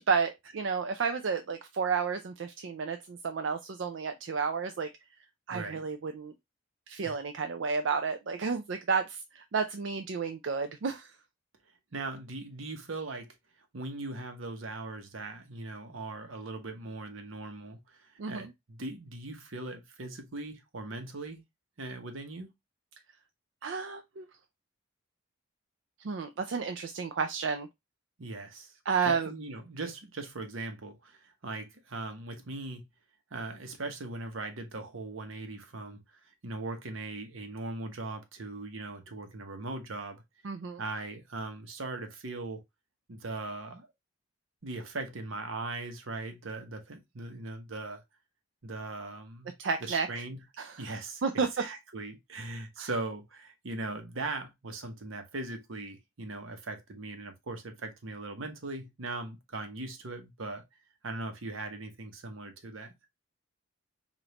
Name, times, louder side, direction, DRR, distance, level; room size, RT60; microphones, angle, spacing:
voice 1, 0.1-4.9 5.5-6.3 6.9-11.1 18.2-18.5 23.6-24.3 26.0-27.7 28.9-29.3 40.4-40.8 49.6-50.2 50.6-50.8 51.2-51.5 52.8-52.9, right 5 dB, 65° right, 0.4 m, -31 dB
voice 2, 5.5-5.8 7.0-7.2 11.9-13.3 13.7-21.4 21.8-22.5 28.2-32.8 33.3-36.0 36.4-40.2 40.8-42.6 43.1-43.9 44.6-48.0 48.6-49.5 49.8-50.4 50.8-51.2 51.5-60.6 61.0-62.9, right 2 dB, 80° right, 1.0 m, -39 dB
5.0 x 2.6 x 2.8 m
head